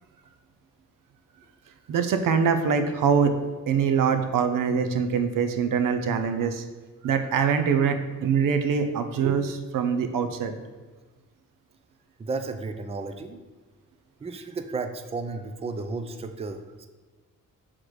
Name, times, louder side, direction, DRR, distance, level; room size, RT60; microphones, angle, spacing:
voice 1, 1.9-3.3 3.7-6.6 7.0-10.6, right 6 dB, 90° right, 8 dB, 0.7 m, -24 dB
voice 2, 12.2-13.4 14.2-16.9, right 3 dB, 20° right, 7 dB, 0.4 m, -33 dB
6.3 x 3.9 x 4.8 m, 1.3 s
wide cardioid pair, 135°, 32 cm